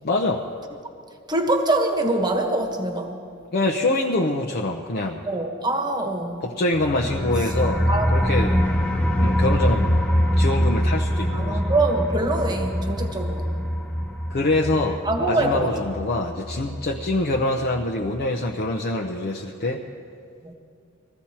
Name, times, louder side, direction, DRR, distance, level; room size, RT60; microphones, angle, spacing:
voice 1, 0.0-0.4 3.5-5.2 6.4-8.6 9.2-10.0 10.4-11.6 14.3-19.9, left 2 dB, 50° left, 1 dB, 0.7 m, -25 dB
voice 2, 1.3-3.2 5.3-6.5 7.9-8.1 8.5-8.6 11.3-13.7 15.0-15.7 20.4-20.5, right 2 dB, 20° right, 4 dB, 1.3 m, -24 dB
sound 1, 6.7-17.4 17.8-17.9 18.2-18.3, equal, 5° left, 0.8 m, -24 dB
20.5 x 15.0 x 4.4 m, 2.4 s
head